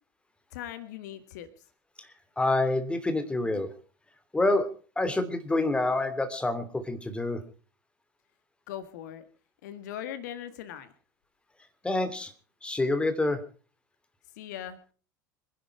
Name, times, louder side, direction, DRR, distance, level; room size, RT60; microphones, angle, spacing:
voice 1, 0.5-1.5 8.7-9.2 9.6-10.9 14.4-14.8, left 10 dB, 60° left, 11 dB, 1.7 m, -39 dB
voice 2, 2.4-3.7 4.3-4.7 5.0-7.4 11.8-12.3 12.6-13.4, left 2 dB, 10° left, 9 dB, 2.9 m, -27 dB
25.5 x 11.0 x 4.8 m, 0.39 s
figure-of-eight pair, 75°, 10 cm